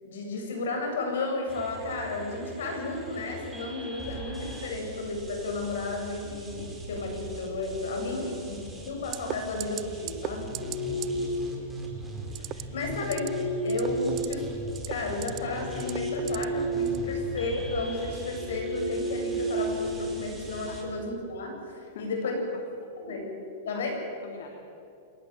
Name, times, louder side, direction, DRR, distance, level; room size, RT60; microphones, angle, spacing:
voice 1, 0.0-10.6 12.4-13.3 13.6-14.5 14.9-22.4 23.0-23.3 23.6-24.0, left 3 dB, 85° left, 2 dB, 7.9 m, -33 dB
sound 1, 1.5-20.8, right 2 dB, 5° right, 4.6 m, -41 dB
sound 2, 9.1-9.3 9.6-9.8 10.1-10.3 10.5-10.8 11.0-11.1 12.3-12.6 13.0-13.3 13.7-14.3 14.7-15.4 15.8-16.4 16.9-17.0, right 18 dB, 35° right, 0.6 m, -35 dB
sound 3, 10.2-11.7 12.7-14.9 15.3-17.2 17.5-17.7 18.2-20.6, right 1 dB, 65° right, 6.6 m, -32 dB
voice 2, 10.5-11.1 13.4-13.5 17.0-17.2 20.7-20.8 21.9-22.4 23.7-23.8 24.2-24.5, left 7 dB, 70° left, 2 dB, 2.8 m, -44 dB
28.5 x 18.5 x 7.6 m, 2.6 s
supercardioid pair, 145°, 0 cm